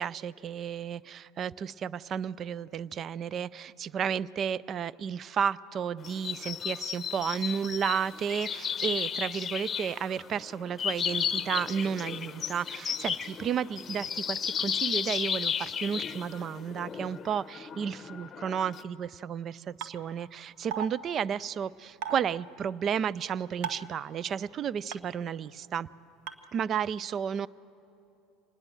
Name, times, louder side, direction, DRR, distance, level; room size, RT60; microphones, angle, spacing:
voice 1, 0.0-25.9 26.5-27.5, right 8 dB, 40° right, 22 dB, 0.4 m, -32 dB
sound 1, 6.0-18.8, left 7 dB, 30° left, 0.9 m, -34 dB
sound 2, 19.8-19.9 20.7-20.9 22.0-22.2 23.6-23.9 24.9-25.0 26.3-26.4, right 8 dB, 60° right, 1.2 m, -33 dB
25.5 x 19.5 x 7.6 m, 3.0 s
hypercardioid pair, 75°, 0 cm